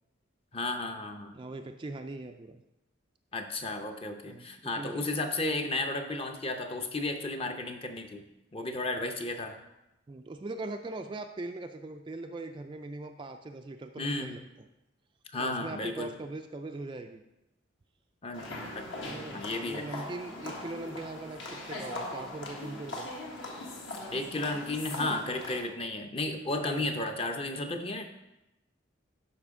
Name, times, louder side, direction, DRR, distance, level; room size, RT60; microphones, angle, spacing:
voice 1, 0.5-1.3 3.3-8.2 8.5-9.6 14.0-14.3 15.3-16.1 18.2-18.9 19.3-20.0 24.1-28.0, left 2 dB, 25° left, 5 dB, 0.6 m, -33 dB
voice 2, 1.3-2.6 4.3-5.1 10.1-14.7 15.4-17.2 19.0-23.1 26.6-26.9, right 2 dB, 25° right, 6 dB, 0.3 m, -41 dB
sound 1, 18.3-25.6, left 2 dB, 65° left, 1.4 m, -40 dB
12.0 x 5.0 x 3.6 m, 0.94 s
head